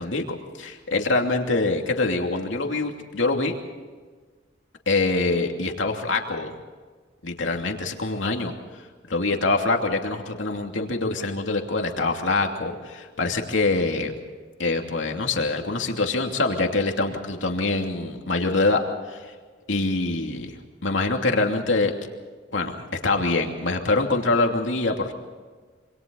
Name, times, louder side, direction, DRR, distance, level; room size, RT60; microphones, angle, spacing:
voice 1, 0.0-3.5 4.9-6.5 7.2-8.5 9.1-14.1 14.6-18.8 19.1-19.2 19.7-20.5 20.8-21.9 22.5-25.1, left 3 dB, 70° left, 2 dB, 2.8 m, -24 dB
27.5 x 26.0 x 4.1 m, 1.4 s
head